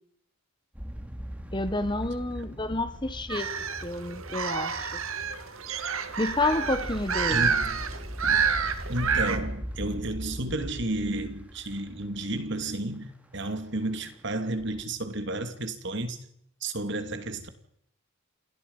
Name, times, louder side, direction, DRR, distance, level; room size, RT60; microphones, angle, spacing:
sound 1, 0.7-13.0 13.4-14.3 14.5-14.8, equal, 5° right, 2.7 m, -40 dB
voice 1, 1.5-3.5 3.8-5.0 6.2-7.5, left 2 dB, 20° left, 1.4 m, -29 dB
sound 2, 3.3-9.4, right 6 dB, 70° right, 2.3 m, -29 dB
voice 2, 7.3-7.8 8.2-8.5 8.9-16.2 16.6-17.5, right 1 dB, 55° right, 2.7 m, -32 dB
28.5 x 20.5 x 5.6 m
head